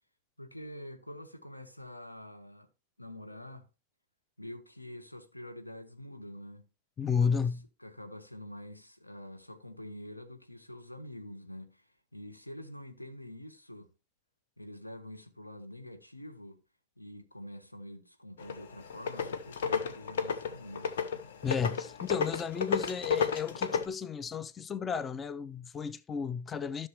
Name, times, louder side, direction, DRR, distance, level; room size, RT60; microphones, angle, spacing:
voice 1, 0.4-2.7 3.0-3.7 4.4-6.6 7.0-7.5 7.8-13.9 14.6-16.6 17.0-20.9, left 1 dB, 85° left, 1.3 m, -46 dB
voice 2, 7.0-7.6 21.4-26.9, left 6 dB, 20° left, 0.4 m, -33 dB
sound 1, 18.4-23.9, left 6 dB, 60° left, 0.9 m, -32 dB
14.0 x 6.3 x 2.9 m
figure-of-eight pair, 90°, 0 cm